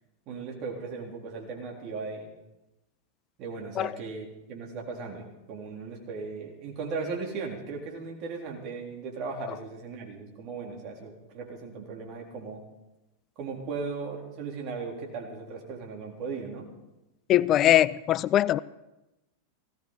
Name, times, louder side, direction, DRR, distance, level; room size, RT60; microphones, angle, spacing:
voice 1, 0.3-2.3 3.4-12.6 13.4-16.7, right 4 dB, 40° right, 0 dB, 3.7 m, -37 dB
voice 2, 17.3-18.6, left 12 dB, 30° left, 20 dB, 0.4 m, -21 dB
18.0 x 16.0 x 4.2 m, 0.99 s
figure-of-eight pair, 90°, 0 cm